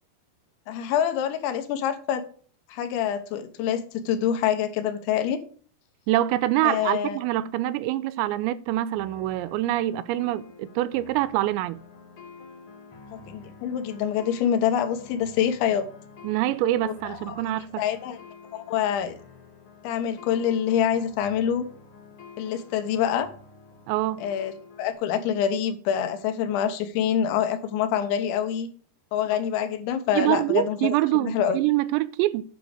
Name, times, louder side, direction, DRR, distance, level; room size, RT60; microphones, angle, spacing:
voice 1, 0.7-2.2 2.7-5.4 6.6-7.2 13.1-15.9 16.8-17.4 17.8-18.2 18.5-19.2 19.8-21.7 22.4-23.3 24.2-24.5 24.8-28.7 29.1-31.0 31.2-31.6, left 9 dB, 85° left, 3.4 m, -26 dB
voice 2, 6.1-11.8 16.2-17.8 23.9-24.3 30.1-32.4, right 15 dB, 85° right, 2.7 m, -25 dB
sound 1, 8.9-24.9, left 5 dB, 50° left, 1.7 m, -48 dB
9.3 x 6.2 x 5.0 m
omnidirectional pair, 5.3 m